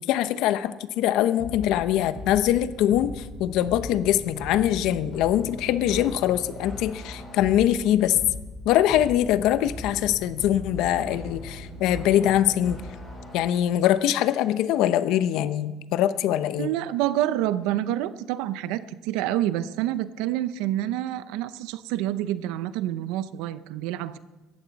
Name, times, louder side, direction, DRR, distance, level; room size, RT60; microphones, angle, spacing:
voice 1, 0.0-8.2 8.6-12.8 13.3-16.7, left 12 dB, 65° left, 13 dB, 0.8 m, -23 dB
sound 1, 1.4-13.4, left 1 dB, ahead, 5.6 m, -39 dB
voice 2, 16.6-24.2, right 13 dB, 85° right, 14 dB, 0.7 m, -28 dB
18.0 x 14.0 x 4.1 m, 1.2 s
cardioid pair, 150°, 0 cm